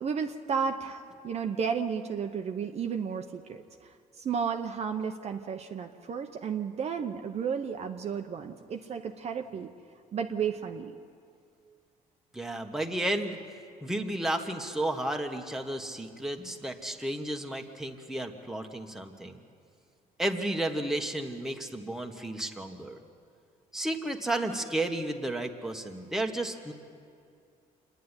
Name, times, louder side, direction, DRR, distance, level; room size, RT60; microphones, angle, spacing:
voice 1, 0.0-9.7 10.1-10.9, right 6 dB, 45° right, 5 dB, 0.8 m, -33 dB
voice 2, 12.3-13.4 13.8-19.4 20.2-23.0 23.7-26.7, right 1 dB, 5° right, 3 dB, 1.3 m, -32 dB
27.0 x 10.5 x 9.7 m, 2.3 s
cardioid pair, 130°, 15 cm